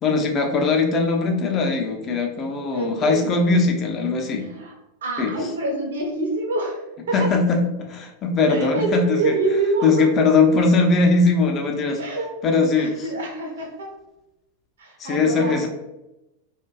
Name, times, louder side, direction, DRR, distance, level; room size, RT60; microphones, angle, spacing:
voice 1, 0.0-4.5 5.2-5.3 7.1-9.4 9.8-12.0 12.4-13.0 15.0-15.7, left 3 dB, 30° left, 3 dB, 0.4 m, -20 dB
voice 2, 2.7-3.3 4.4-4.7 5.0-7.3 8.5-10.1 12.0-12.3 12.8-13.9 14.8-15.7, right 2 dB, 65° right, 0 dB, 0.7 m, -26 dB
2.5 x 2.2 x 2.3 m, 0.95 s
figure-of-eight pair, 90°, 0 cm